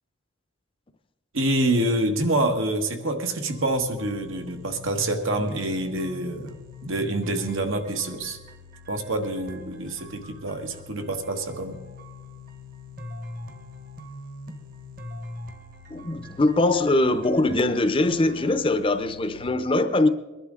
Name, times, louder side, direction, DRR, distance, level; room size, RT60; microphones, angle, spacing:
voice 1, 1.3-6.5 6.8-8.4 8.9-11.8, right 1 dB, 80° right, 1.4 m, -26 dB
sound 1, 3.5-19.5, left 2 dB, 45° right, 1.2 m, -42 dB
voice 2, 15.9-20.1, left 2 dB, 25° left, 0.6 m, -22 dB
22.0 x 11.5 x 3.7 m
head